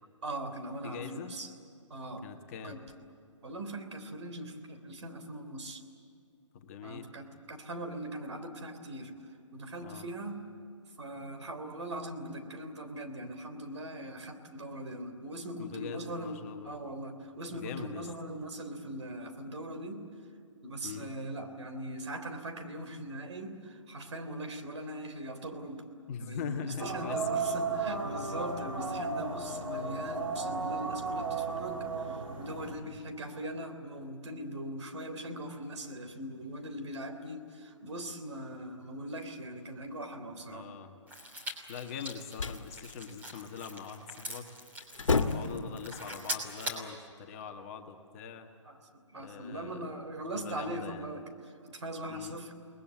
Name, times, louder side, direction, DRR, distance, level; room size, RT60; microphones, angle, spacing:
voice 1, 0.2-1.5 1.9-2.3 2.6-2.8 3.4-5.8 6.8-10.4 11.0-20.1 20.6-25.9 26.2-40.7 48.6-52.5, right 1 dB, 60° right, 6 dB, 3.4 m, -41 dB
voice 2, 0.8-1.3 2.2-2.8 6.5-7.0 9.8-10.0 15.6-16.8 17.5-18.0 20.8-21.1 26.1-27.3 27.8-28.1 32.6-33.1 40.3-40.9 41.7-44.5 45.2-48.5 49.1-49.9 50.4-51.1 52.1-52.4, left 7 dB, 25° left, 4 dB, 1.5 m, -42 dB
sound 1, 26.8-32.7, right 4 dB, 85° right, 3.2 m, -34 dB
sound 2, 41.1-46.9, equal, 10° right, 3.2 m, -42 dB
sound 3, 41.9-42.7 44.3-44.5 44.8-45.7, left 4 dB, 75° left, 1.7 m, -30 dB
28.5 x 20.5 x 8.3 m, 2.5 s
figure-of-eight pair, 150°, 17 cm